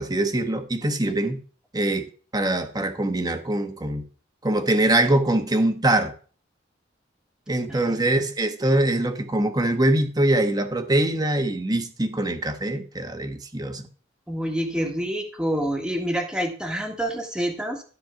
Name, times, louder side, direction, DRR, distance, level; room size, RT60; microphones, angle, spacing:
voice 1, 0.0-1.4 1.7-2.1 2.3-4.0 4.4-6.1 7.5-13.9, right 1 dB, 20° right, 1.2 m, -23 dB
voice 2, 7.7-8.1 14.3-17.8, equal, 5° right, 1.7 m, -27 dB
13.0 x 4.5 x 7.0 m
head